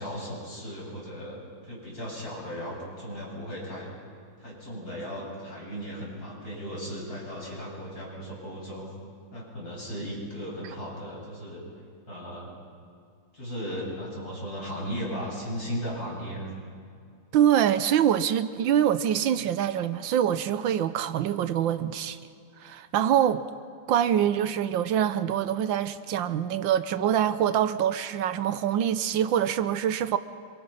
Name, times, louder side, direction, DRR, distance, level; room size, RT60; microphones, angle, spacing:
voice 1, 0.0-3.9 4.4-8.9 9.3-11.6 12.1-12.5 13.3-16.5, equal, 50° left, 7.8 m, -36 dB
voice 2, 17.3-22.2 22.6-23.4 23.9-30.2, right 10 dB, 80° right, 1.5 m, -25 dB
27.0 x 25.0 x 5.7 m
omnidirectional pair, 2.1 m